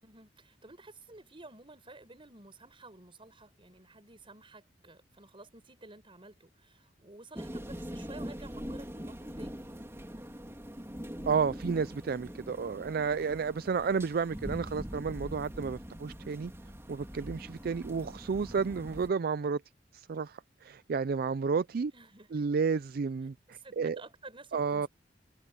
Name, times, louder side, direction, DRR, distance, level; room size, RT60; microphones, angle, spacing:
voice 1, 0.0-9.6 21.9-22.6 23.5-24.9, right 2 dB, 30° right, 6.3 m, -52 dB
sound 1, 7.4-19.1, equal, 15° right, 3.0 m, -43 dB
voice 2, 11.3-16.5 16.9-19.6 19.9-21.9 22.3-24.0 24.5-24.9, right 5 dB, 55° right, 0.4 m, -31 dB
head